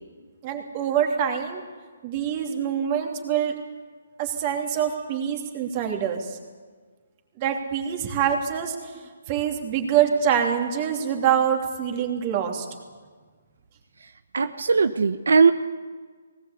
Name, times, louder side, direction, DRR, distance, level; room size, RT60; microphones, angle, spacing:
voice 1, 0.4-1.6 2.0-3.5 4.2-6.4 7.4-8.7 9.3-12.7, right 8 dB, 30° right, 3 dB, 3.0 m, -25 dB
voice 2, 14.3-15.5, right 5 dB, 80° right, 9 dB, 0.9 m, -19 dB
19.5 x 18.0 x 8.3 m, 1.5 s
hypercardioid pair, 160°, 0 cm